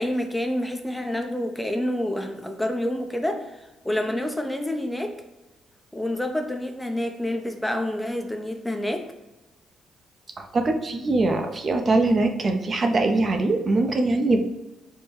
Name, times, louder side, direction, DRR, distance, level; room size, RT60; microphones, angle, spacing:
voice 1, 0.0-5.1 5.9-9.1, left 1 dB, 5° left, 4 dB, 0.6 m, -28 dB
voice 2, 10.4-14.4, right 2 dB, 40° right, 5 dB, 0.6 m, -22 dB
4.5 x 2.2 x 4.7 m, 1.0 s
cardioid pair, 90°, 0 cm